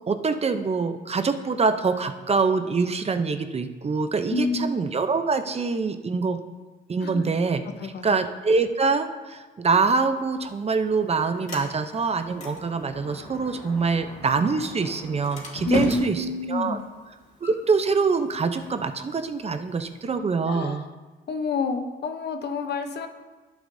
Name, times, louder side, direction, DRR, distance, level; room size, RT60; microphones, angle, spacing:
voice 1, 0.1-6.4 6.9-7.6 8.0-16.8 17.4-20.8, right 4 dB, 30° right, 8 dB, 0.7 m, -25 dB
voice 2, 4.3-4.8 7.0-7.3 7.8-8.2 15.6-16.9 20.5-20.9 21.3-23.1, left 3 dB, 55° left, 7 dB, 0.9 m, -28 dB
Sliding door, 10.2-20.2, left 1 dB, 35° left, 2.4 m, -39 dB
11.5 x 8.2 x 2.7 m, 1.3 s
cardioid pair, 90°, 20 cm